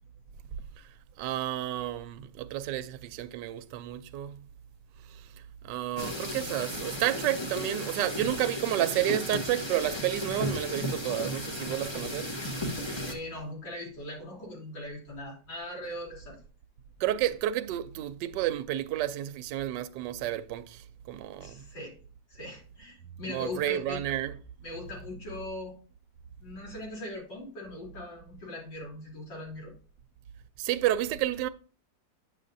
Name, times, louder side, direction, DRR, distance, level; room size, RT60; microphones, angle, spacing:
voice 1, 1.2-4.4 5.6-12.3 17.0-20.8 21.1-21.6 23.3-24.3 30.6-31.5, right 13 dB, 75° right, 1.2 m, -30 dB
sound 1, 6.0-13.1, left 1 dB, 20° left, 0.9 m, -34 dB
voice 2, 13.0-16.4 21.4-22.0 22.3-24.0 24.6-25.7 26.4-29.7, left 1 dB, 70° left, 3.9 m, -40 dB
9.7 x 6.6 x 2.6 m
omnidirectional pair, 2.0 m